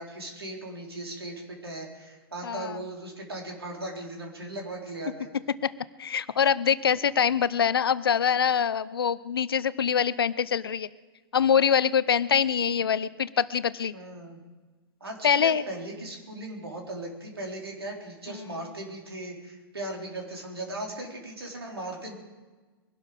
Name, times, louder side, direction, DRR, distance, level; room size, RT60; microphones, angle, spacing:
voice 1, 0.0-5.3 13.9-14.4 15.0-22.1, right 1 dB, 80° right, 0 dB, 3.8 m, -38 dB
voice 2, 2.4-2.7 5.6-5.7 6.0-10.9 11.3-13.9 15.2-15.6, left 7 dB, 70° left, 17 dB, 0.7 m, -24 dB
22.5 x 12.0 x 5.1 m, 1.3 s
figure-of-eight pair, 110°, 13 cm